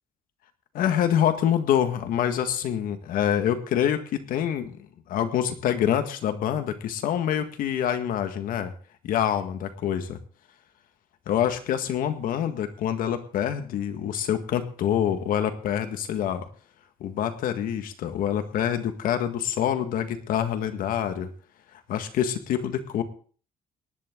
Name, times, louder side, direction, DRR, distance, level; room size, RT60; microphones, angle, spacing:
voice 1, 0.7-4.8 5.1-8.7 9.0-10.2 11.3-16.4 17.0-21.3 21.9-23.0, left 10 dB, 80° left, 8 dB, 1.8 m, -26 dB
18.5 x 11.0 x 3.8 m, 0.42 s
cardioid pair, 120°, 14 cm